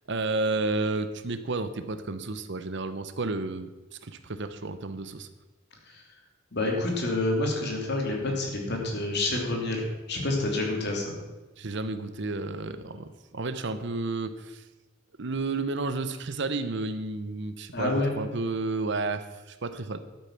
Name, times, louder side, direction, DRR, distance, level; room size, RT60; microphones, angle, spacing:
voice 1, 0.1-3.7 4.0-5.3 11.6-14.6 15.2-20.0, right 3 dB, 60° right, 11 dB, 0.8 m, -31 dB
voice 2, 6.5-11.2 17.7-18.1, left 2 dB, 55° left, 0 dB, 2.9 m, -28 dB
11.5 x 8.8 x 5.9 m, 1.2 s
head